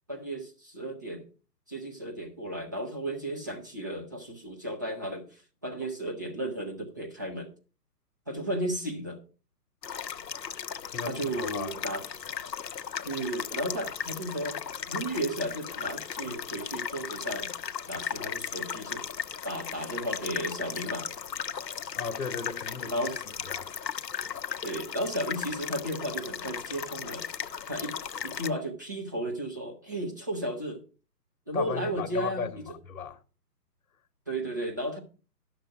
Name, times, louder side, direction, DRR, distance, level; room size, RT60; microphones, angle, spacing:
voice 1, 0.1-1.3 1.7-7.5 8.3-9.2 11.0-12.0 13.0-14.6 14.9-17.5 17.9-19.0 19.4-21.1 22.9-23.2 24.6-27.2 27.7-28.0 28.2-30.8 31.5-32.5 34.3-35.0, right 1 dB, 10° right, 0.5 m, -34 dB
sound 1, 9.8-28.5, left 7 dB, 80° left, 0.8 m, -36 dB
voice 2, 10.9-11.9 21.9-22.9 23.5-23.7 31.5-33.2, left 6 dB, 55° left, 1.2 m, -36 dB
11.5 x 6.6 x 4.7 m
figure-of-eight pair, 135°, 50 cm